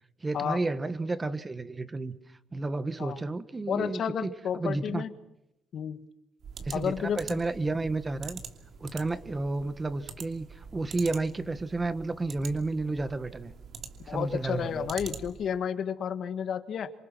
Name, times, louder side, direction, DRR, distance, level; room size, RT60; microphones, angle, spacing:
voice 1, 0.2-5.0 6.6-8.4 8.8-13.5 14.0-14.9, right 3 dB, 25° right, 12 dB, 1.6 m, -32 dB
voice 2, 3.7-5.1 5.7-6.0 6.7-7.4 14.1-16.9, left 8 dB, 65° left, 9 dB, 1.8 m, -31 dB
sound 1, 6.4-15.6, right 6 dB, 65° right, 2.7 m, -45 dB
27.0 x 24.5 x 6.2 m, 0.89 s
cardioid pair, 90°, 0 cm